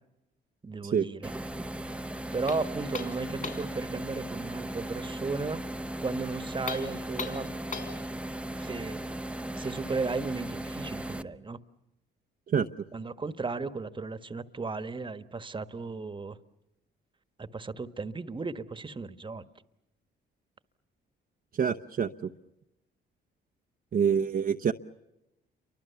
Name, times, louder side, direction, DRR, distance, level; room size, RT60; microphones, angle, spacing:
voice 1, 0.6-1.3 2.3-5.6 6.0-7.5 8.6-9.0 9.5-11.6 12.9-16.4 17.4-19.4, right 4 dB, 25° right, 1.4 m, -35 dB
sound 1, 1.2-11.2, right 1 dB, 5° right, 1.0 m, -37 dB
old door knocker, 2.5-3.8 6.6-8.0, left 5 dB, 40° left, 5.9 m, -38 dB
voice 2, 21.5-22.3 23.9-24.7, right 7 dB, 45° right, 0.9 m, -26 dB
29.5 x 24.5 x 7.0 m
cardioid pair, 90°, 20 cm